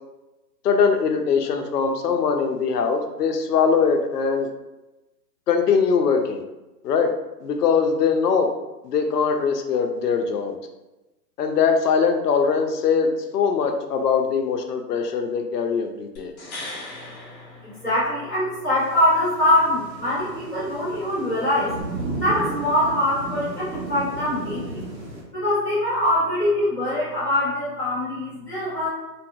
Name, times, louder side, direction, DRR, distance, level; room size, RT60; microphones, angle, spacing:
voice 1, 0.6-4.5 5.5-6.4 6.8-7.1 7.4-8.5 8.8-10.5 11.4-16.3, left 6 dB, 70° left, 5 dB, 0.6 m, -21 dB
sound 1, 16.2-18.4 21.8-21.9, left 2 dB, 25° left, 0.7 m, -39 dB
voice 2, 17.6-21.7 22.1-24.8 25.3-28.9, left 1 dB, 5° right, -22 dB, 0.4 m, -23 dB
Thunder / Rain, 18.8-25.2, right 2 dB, 80° right, 1.2 m, -34 dB
2.6 x 2.3 x 2.6 m, 1.0 s
hypercardioid pair, 135°, 50 cm